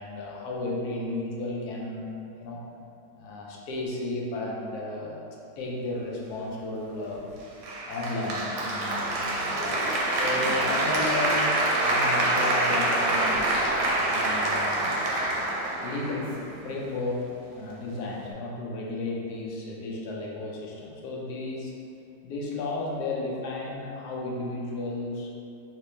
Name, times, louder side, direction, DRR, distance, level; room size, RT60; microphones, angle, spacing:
voice 1, 0.0-2.0 2.4-2.6 3.2-5.2 5.6-7.3 7.9-13.5 14.1-14.9 15.8-16.4 16.6-21.7 22.2-25.3, left 2 dB, 80° left, -3 dB, 1.1 m, -33 dB
Applause, 7.6-16.6, right 2 dB, 70° right, 0.9 m, -26 dB
3.0 x 3.0 x 3.1 m, 2.6 s
omnidirectional pair, 1.7 m